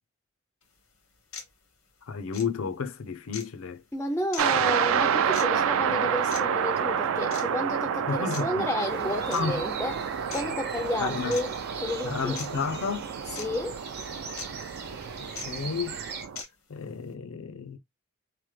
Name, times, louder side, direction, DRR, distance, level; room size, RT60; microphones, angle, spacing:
sound 1, 0.6-0.7 1.3-1.5 2.3-2.5 3.3-3.5 4.3-4.5 5.3-5.5 6.3-6.4 7.3-7.5 8.3-8.4 9.3-9.4 10.3-10.4 11.3-11.4 12.4-12.5 13.4-13.5 14.4-14.5 15.4-15.5 16.4-16.5, left 6 dB, 90° left, 1.0 m, -38 dB
voice 1, 2.0-3.8 4.5-4.8 8.1-8.7 9.3-9.7 11.0-11.3 12.0-13.1 15.2-16.0 16.7-17.8, left 5 dB, 75° left, 0.5 m, -32 dB
voice 2, 3.9-12.4 13.4-13.8, left 1 dB, 10° left, 0.3 m, -32 dB
sound 2, 4.4-16.4, right 7 dB, 70° right, 0.3 m, -29 dB
sound 3, 8.9-16.3, right 5 dB, 50° right, 0.8 m, -41 dB
3.1 x 2.1 x 3.1 m
head